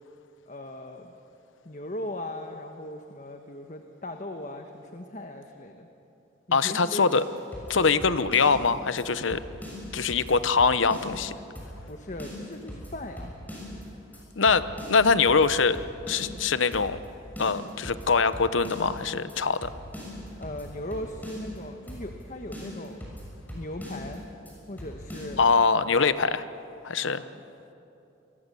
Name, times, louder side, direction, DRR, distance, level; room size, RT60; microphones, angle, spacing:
voice 1, 0.5-1.1 1.6-5.9 6.5-7.0 7.8-8.0 11.9-13.3 20.4-23.0 23.5-24.2 24.7-25.4 27.0-27.4, left 1 dB, 40° left, 5 dB, 1.2 m, -38 dB
voice 2, 6.5-7.2 7.7-9.4 9.9-11.3 14.4-15.8 16.1-17.0 17.4-19.7 25.4-26.4 26.8-27.2, left 5 dB, 85° left, 13 dB, 0.9 m, -23 dB
sound 1, 7.1-8.7 9.0-9.1 9.3-11.3 11.6-11.9 12.2-13.8 14.1-14.2 14.5-16.4 16.7-17.1 17.4-19.0 19.3-19.4 19.6-21.6 21.9-22.2 22.5-24.2 24.5-24.6 24.8-25.4, equal, 10° left, 6.6 m, -41 dB
28.0 x 22.5 x 6.9 m, 2.9 s
head